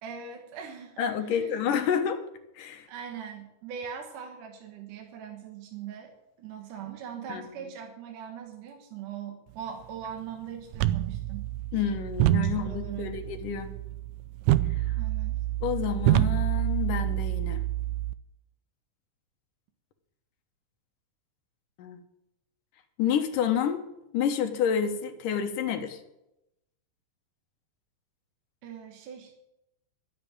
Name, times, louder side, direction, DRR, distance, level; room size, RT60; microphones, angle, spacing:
voice 1, 0.0-1.7 2.9-6.1 6.4-11.8 12.5-13.1 15.0-15.4 28.6-29.3, right 8 dB, 70° right, 3 dB, 2.8 m, -41 dB
voice 2, 1.0-2.2 2.6-2.9 7.3-7.4 11.7-13.7 15.6-17.6 21.8-22.0 23.0-23.8 24.1-26.0, left 8 dB, 70° left, 7 dB, 2.6 m, -29 dB
sound 1, 10.7-18.1, right 15 dB, 90° right, 1.6 m, -27 dB
12.5 x 8.0 x 8.9 m, 0.87 s
omnidirectional pair, 4.0 m